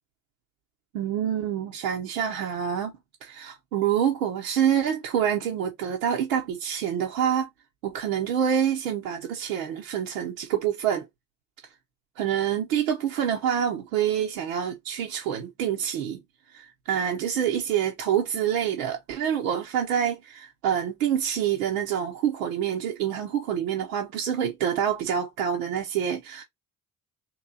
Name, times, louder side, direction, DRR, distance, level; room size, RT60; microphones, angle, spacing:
voice 1, 0.9-2.9 3.2-7.5 7.8-11.0 12.2-16.2 16.5-26.4, right 9 dB, 85° right, 0.7 m, -27 dB
2.9 x 2.9 x 3.8 m
hypercardioid pair, 45°, 39 cm